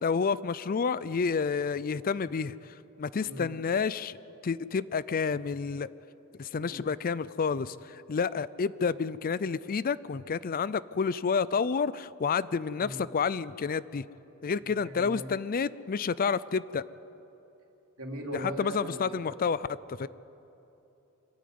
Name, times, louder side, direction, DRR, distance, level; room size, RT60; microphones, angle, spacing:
voice 1, 0.0-2.5 3.0-4.2 4.4-5.9 6.4-14.0 14.4-16.8 18.3-20.1, left 5 dB, 40° left, 18 dB, 0.4 m, -29 dB
voice 2, 14.8-15.3 18.0-19.3, right 1 dB, 75° right, 1 dB, 3.2 m, -39 dB
25.5 x 14.5 x 9.5 m, 2.9 s
head